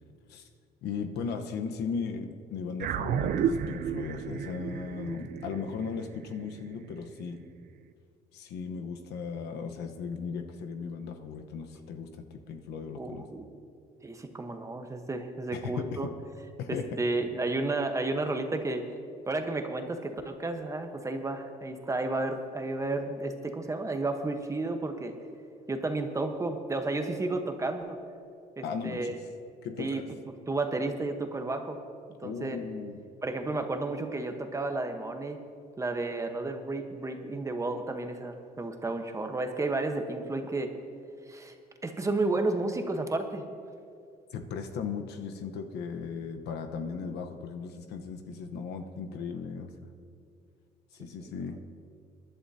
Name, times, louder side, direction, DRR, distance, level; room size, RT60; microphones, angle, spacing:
voice 1, 0.8-7.4 8.3-13.2 15.5-16.1 16.6-16.9 28.6-29.1 29.6-30.1 32.2-33.0 44.3-49.9 50.9-51.6, left 5 dB, 80° left, 6 dB, 1.0 m, -37 dB
sound 1, 2.8-7.4, right 8 dB, 60° right, 0.6 m, -32 dB
voice 2, 13.0-13.5 14.0-16.1 17.0-18.8 19.3-25.1 25.7-28.0 28.6-29.1 29.8-30.0 30.5-31.8 32.2-32.6 33.2-35.4 35.8-40.7 41.3-41.6 41.8-43.4 51.2-51.3, right 2 dB, 20° right, 5 dB, 1.1 m, -32 dB
23.0 x 11.0 x 2.8 m, 2.3 s
cardioid pair, 110°, 17 cm